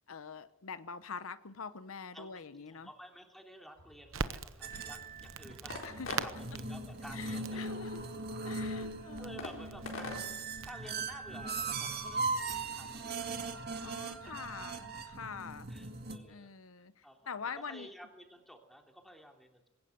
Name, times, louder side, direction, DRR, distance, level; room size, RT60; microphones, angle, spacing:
voice 1, 0.1-2.9 5.8-6.1 7.1-8.0 8.4-9.6 13.8-15.7 16.3-17.9, left 5 dB, 85° left, 14 dB, 0.9 m, -45 dB
voice 2, 2.1-7.7 9.2-10.2 10.6-12.3 12.5-14.2 15.7-16.6 17.0-17.3 17.7-19.7, equal, ahead, 3 dB, 3.0 m, -53 dB
sound 1, 3.8-13.5, left 2 dB, 65° left, 4.1 m, -49 dB
Crackle, 4.1-12.0, right 5 dB, 75° right, 1.0 m, -45 dB
sound 2, 4.6-16.2, right 3 dB, 50° right, 2.0 m, -39 dB
20.5 x 18.0 x 7.9 m, 0.90 s
head